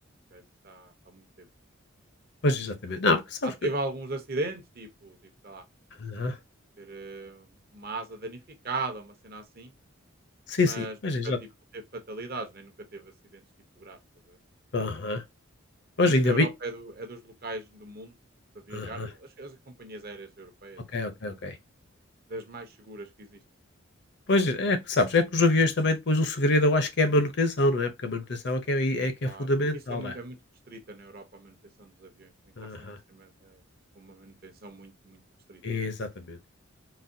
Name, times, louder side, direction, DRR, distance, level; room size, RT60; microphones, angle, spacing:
voice 1, 0.3-1.5 3.4-5.6 6.8-8.4 8.6-9.7 10.6-10.9 11.2-11.3 11.7-13.4 13.8-14.0 16.0-18.1 18.7-20.8 22.3-23.4 29.2-29.5 29.9-30.4 30.7-32.3 33.1-33.6 34.0-35.2 35.5-35.6, right 2 dB, 45° right, 0.8 m, -38 dB
voice 2, 2.4-3.5 6.0-6.3 10.5-11.4 14.7-15.2 16.0-16.5 18.7-19.1 20.9-21.6 24.3-30.2 32.6-33.0 35.6-36.5, left 2 dB, 55° left, 0.6 m, -25 dB
4.0 x 2.2 x 2.6 m
head